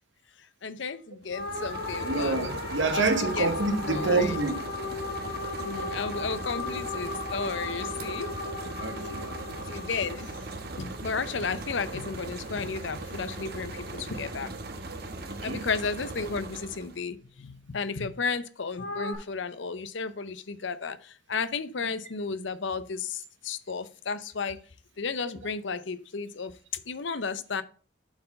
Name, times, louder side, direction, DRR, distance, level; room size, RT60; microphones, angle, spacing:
voice 1, 0.6-2.5 2.9-3.5 3.9-4.4 5.6-8.3 9.5-10.3 10.8-14.5 15.4-24.6 25.0-27.6, left 5 dB, 65° left, 0.7 m, -33 dB
sound 1, 1.2-17.0, right 2 dB, 50° right, 1.1 m, -39 dB
sound 2, 1.3-11.8 18.8-19.1, left 2 dB, 90° left, 2.0 m, -36 dB
voice 2, 2.0-4.7 8.8-9.4 15.2-15.6, right 3 dB, 70° right, 1.3 m, -27 dB
7.8 x 4.6 x 5.4 m
head